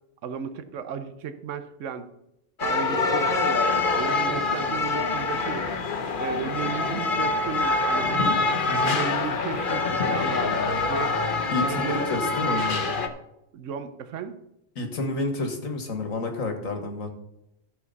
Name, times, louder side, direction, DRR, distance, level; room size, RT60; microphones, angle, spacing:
voice 1, 0.2-2.1 2.6-3.7 4.0-5.7 6.2-8.4 8.9-11.2 11.6-12.3 13.5-14.4, right 7 dB, 70° right, 10 dB, 1.1 m, -34 dB
sound 1, 2.6-13.1, left 3 dB, 45° left, 1.0 m, -25 dB
voice 2, 8.7-9.0 11.5-12.8 14.8-17.1, left 3 dB, 80° left, 4 dB, 2.0 m, -29 dB
14.0 x 7.0 x 4.1 m, 0.84 s
omnidirectional pair, 1.4 m